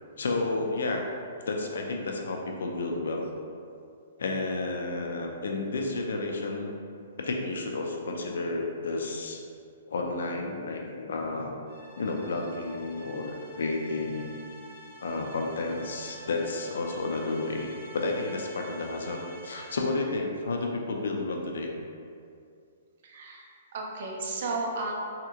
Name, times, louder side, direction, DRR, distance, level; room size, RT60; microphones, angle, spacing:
voice 1, 0.2-1.0 1.5-3.2 4.2-6.7 7.2-9.4 9.9-11.5 12.0-14.3 15.0-21.7, left 3 dB, 85° left, 1 dB, 0.5 m, -31 dB
sound 1, 11.7-20.1, right 1 dB, 10° left, 1.2 m, -48 dB
voice 2, 23.0-24.9, right 3 dB, 55° right, 0 dB, 0.5 m, -34 dB
3.5 x 2.8 x 2.4 m, 2.3 s
hypercardioid pair, 160°, 0 cm